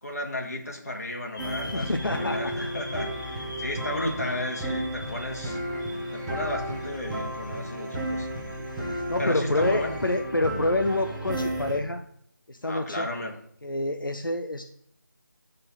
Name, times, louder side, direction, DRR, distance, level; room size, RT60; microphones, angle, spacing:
voice 1, 0.0-5.6 6.1-8.3 9.2-10.0 12.6-13.4, left 1 dB, 50° left, 1 dB, 2.1 m, -33 dB
sound 1, 1.3-10.2, left 1 dB, 10° left, 1.3 m, -46 dB
sound 2, 1.4-11.8, right 1 dB, 5° right, 1.1 m, -33 dB
voice 2, 1.6-2.7 8.8-12.0 12.5-13.1 13.6-14.6, left 2 dB, 85° left, 5 dB, 0.9 m, -28 dB
12.0 x 4.3 x 5.3 m, 0.68 s
figure-of-eight pair, 165°, 11 cm